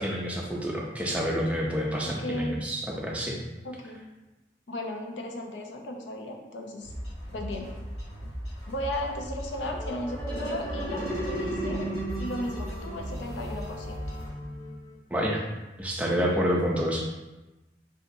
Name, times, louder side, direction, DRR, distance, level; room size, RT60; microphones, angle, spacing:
voice 1, 0.0-3.4 15.1-15.4 15.8-17.0, equal, 5° right, -2 dB, 0.4 m, -28 dB
voice 2, 2.0-2.6 3.6-4.0 4.7-6.9 7.3-7.7 8.7-11.9 12.2-14.0, left 1 dB, 90° left, 2 dB, 0.5 m, -35 dB
sound 1, 6.8-14.3, equal, 40° left, 1.4 m, -38 dB
sound 2, 9.5-14.9, right 1 dB, 20° left, 1.0 m, -35 dB
3.4 x 2.9 x 2.6 m, 1.1 s
head